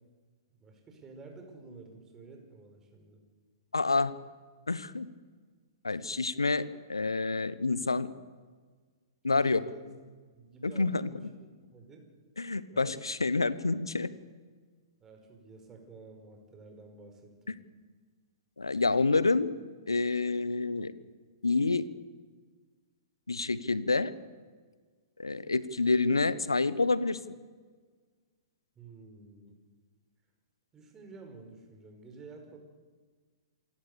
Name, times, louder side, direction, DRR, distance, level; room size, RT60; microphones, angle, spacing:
voice 1, 0.6-3.2 9.3-9.9 10.3-11.3 11.7-12.0 12.7-13.0 15.0-17.6 28.7-29.5 30.7-32.6, right 3 dB, 20° right, 4 dB, 5.2 m, -51 dB
voice 2, 3.7-4.1 4.7-5.1 5.8-8.1 9.2-9.6 10.6-11.1 12.4-14.1 17.5-17.6 18.6-19.5 19.9-20.9 21.4-21.9 23.3-24.1 25.2-27.2, left 3 dB, 85° left, 17 dB, 1.1 m, -28 dB
27.5 x 17.0 x 6.9 m, 1.5 s
figure-of-eight pair, 115°, 2 cm